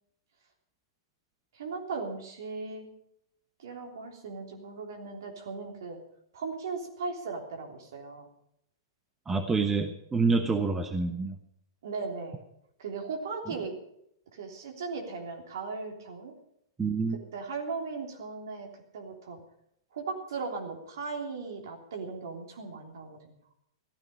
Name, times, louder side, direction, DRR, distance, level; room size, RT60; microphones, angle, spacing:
voice 1, 1.5-2.8 3.6-6.0 6.3-8.3 11.8-12.4 12.8-13.8 14.3-16.3 17.3-18.7 18.9-19.4 19.9-23.3, right 4 dB, 60° right, 2 dB, 3.3 m, -37 dB
voice 2, 9.3-11.4 16.8-17.2, right 4 dB, 15° right, 7 dB, 1.1 m, -27 dB
15.0 x 14.0 x 5.6 m, 0.76 s
figure-of-eight pair, 105°, 2 cm